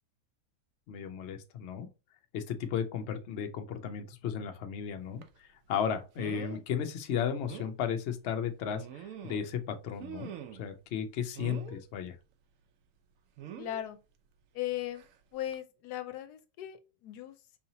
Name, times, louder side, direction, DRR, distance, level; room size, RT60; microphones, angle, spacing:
voice 1, 0.9-1.9 2.3-10.3 10.6-12.1, left 8 dB, 60° left, 0.7 m, -34 dB
sound 1, 5.2-5.4 6.2-6.6 7.0-7.1 7.5-7.7 8.6-9.6 10.0-10.7 11.4-11.8 13.4-13.8 15.0-15.1 15.5-15.6, right 9 dB, 65° right, 0.9 m, -44 dB
voice 2, 13.6-14.0 14.5-15.1 15.3-17.6, left 13 dB, 85° left, 1.2 m, -38 dB
4.7 x 2.8 x 2.8 m
omnidirectional pair, 1.7 m